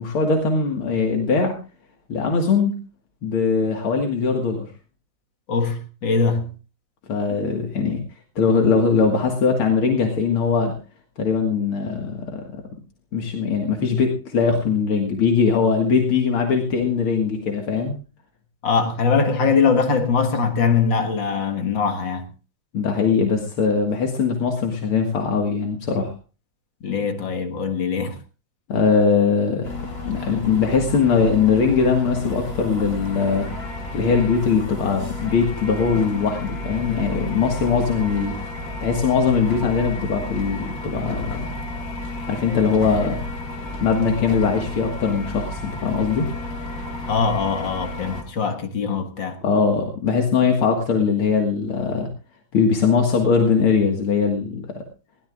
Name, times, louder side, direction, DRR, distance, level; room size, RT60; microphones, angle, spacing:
voice 1, 0.0-1.6 2.1-2.8 3.2-4.7 7.1-8.0 8.4-10.7 11.2-12.4 13.1-18.0 22.7-26.1 28.7-29.7 30.1-33.5 33.9-38.4 38.8-41.6 42.2-43.2 43.8-46.3 49.4-52.1 52.5-54.8, left 5 dB, 80° left, 2.6 m, -21 dB
voice 2, 5.5-6.5 18.6-22.2 26.8-28.2 47.1-49.4, left 5 dB, 60° left, 2.4 m, -22 dB
sound 1, 29.6-48.2, left 2 dB, 45° left, 3.3 m, -32 dB
21.5 x 16.5 x 2.4 m
omnidirectional pair, 2.3 m